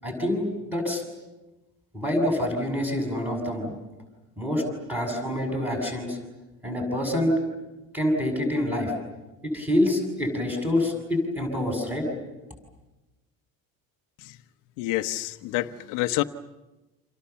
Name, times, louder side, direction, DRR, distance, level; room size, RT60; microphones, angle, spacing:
voice 1, 0.0-1.0 1.9-3.8 4.4-4.6 4.9-6.2 6.6-7.4 7.9-8.9 9.4-12.1, left 1 dB, 5° right, 1 dB, 6.9 m, -26 dB
voice 2, 14.8-16.2, left 17 dB, 80° left, 7 dB, 1.1 m, -27 dB
29.0 x 27.5 x 7.1 m, 1.1 s
cardioid pair, 170°, 32 cm